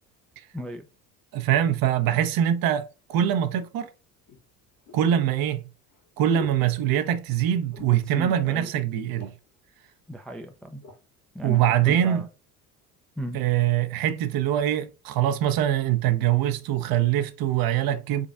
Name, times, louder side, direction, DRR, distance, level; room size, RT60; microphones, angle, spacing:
voice 1, 0.5-0.9 7.8-8.7 10.1-10.8 11.3-12.3 13.2-13.4, right 1 dB, ahead, 0.4 m, -36 dB
voice 2, 1.3-3.9 4.9-5.6 6.2-9.3 11.4-12.3 13.3-18.3, right 11 dB, 50° right, 0.6 m, -23 dB
sound 1, 4.3-7.4 7.7-8.1 8.5-8.6 8.9-9.6 10.3-11.0 11.7-11.8, left 6 dB, 85° left, 1.5 m, -45 dB
3.9 x 3.5 x 2.3 m
hypercardioid pair, 60°, 45 cm